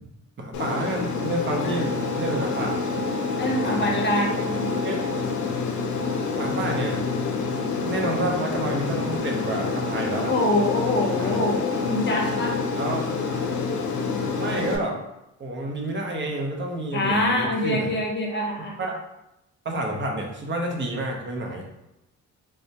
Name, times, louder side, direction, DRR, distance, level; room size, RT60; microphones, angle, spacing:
voice 1, 0.4-2.8 3.6-3.8 4.8-5.0 6.4-7.0 7.4-10.3 11.1-11.4 12.8-13.1 14.4-15.0 15.4-17.9 18.8-18.9 19.6-21.7, right 1 dB, 40° right, 0 dB, 0.7 m, -29 dB
Aircraft, 0.5-14.8, left 4 dB, 80° left, 0.5 m, -27 dB
voice 2, 3.4-4.8 10.2-12.6 16.9-18.8, left 1 dB, 40° left, 0 dB, 0.7 m, -25 dB
3.3 x 2.1 x 2.7 m, 0.89 s
cardioid pair, 90°, 30 cm